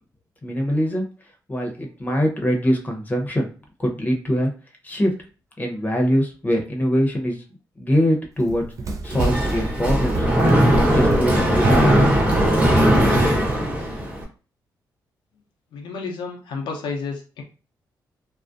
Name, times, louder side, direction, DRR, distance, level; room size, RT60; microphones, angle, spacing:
voice 1, 0.4-1.1 1.5-3.5 3.8-4.5 4.8-5.1 5.6-7.4 7.8-8.6 9.0-10.3 10.7-12.0, equal, 20° left, 2 dB, 0.8 m, -22 dB
Run, 8.4-13.6, right 2 dB, 45° right, 0.5 m, -26 dB
Mechanisms, 9.0-14.2, equal, 15° right, 1.1 m, -19 dB
voice 2, 15.7-17.4, left 4 dB, 85° left, 1 dB, 0.6 m, -31 dB
2.4 x 2.1 x 2.5 m, 0.36 s
cardioid pair, 70°, 8 cm